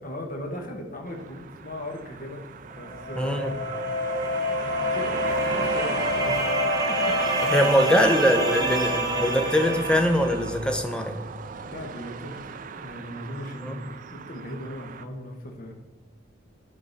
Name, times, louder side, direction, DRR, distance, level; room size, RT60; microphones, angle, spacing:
voice 1, 0.0-2.4 2.7-3.4 4.6-8.7 9.1-9.3 11.6-15.7, left 1 dB, 50° left, 2 dB, 1.1 m, -38 dB
sound 1, 1.1-15.1, right 5 dB, 45° right, 0.4 m, -37 dB
sound 2, 2.7-10.5, equal, 20° right, 0.9 m, -27 dB
voice 2, 3.2-3.5 7.5-11.2 13.6-13.8, equal, 5° left, 5 dB, 0.6 m, -22 dB
11.0 x 3.8 x 4.0 m, 1.2 s
head